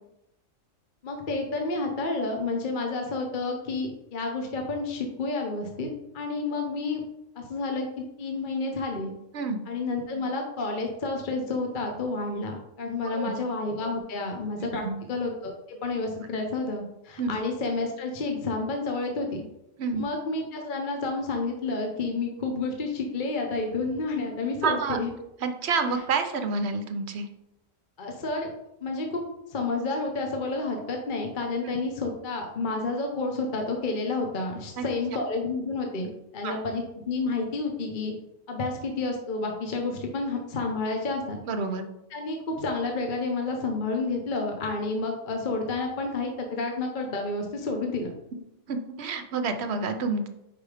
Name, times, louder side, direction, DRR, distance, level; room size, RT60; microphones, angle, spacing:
voice 1, 1.0-7.0 7.4-9.1 9.7-19.4 19.9-25.1 28.0-28.5 28.8-29.2 29.5-38.1 38.5-41.4 42.1-48.1, left 3 dB, 40° left, 2 dB, 0.9 m, -30 dB
voice 2, 24.6-25.0 25.4-27.3 31.6-31.8 34.8-34.9 36.4-36.5 41.5-41.9 48.7-50.3, right 4 dB, 60° right, 8 dB, 0.9 m, -28 dB
5.1 x 4.9 x 4.9 m, 0.86 s
omnidirectional pair, 1.4 m